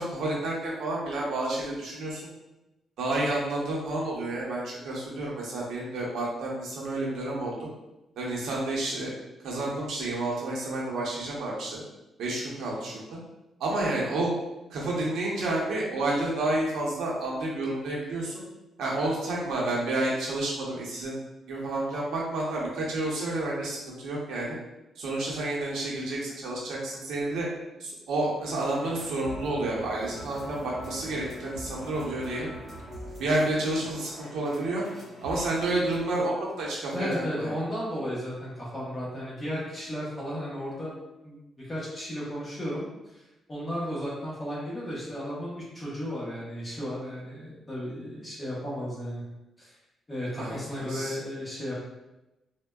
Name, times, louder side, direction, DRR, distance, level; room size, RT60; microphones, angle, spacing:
voice 1, 0.0-2.2 3.0-7.7 8.2-9.1 9.4-11.8 12.2-13.2 13.6-14.3 14.7-18.4 18.8-21.2 21.5-24.6 25.0-27.5 27.8-32.5 33.2-34.8 35.2-37.5 50.4-51.2, right 2 dB, 80° right, -4 dB, 0.8 m, -30 dB
sound 1, 28.8-36.2, equal, ahead, 1.2 m, -43 dB
voice 2, 36.9-41.0 41.2-49.2 49.6-49.7 50.1-51.7, equal, 15° left, -7 dB, 0.9 m, -34 dB
3.5 x 2.1 x 2.3 m, 0.96 s
cardioid pair, 160°, 0 cm